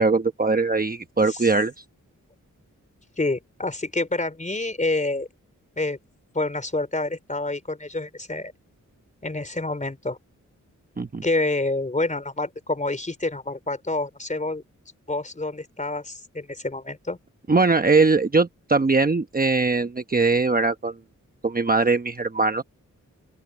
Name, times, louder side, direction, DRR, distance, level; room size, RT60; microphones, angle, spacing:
voice 1, 0.0-1.7 11.0-11.2 17.5-20.9 21.4-22.6, right 3 dB, 30° right, 1.0 m, -21 dB
voice 2, 3.2-5.3 5.8-6.0 6.3-8.5 9.2-10.2 11.2-14.6 15.1-17.2, left 2 dB, 25° left, 4.0 m, -27 dB
open air
wide cardioid pair, 115°, 31 cm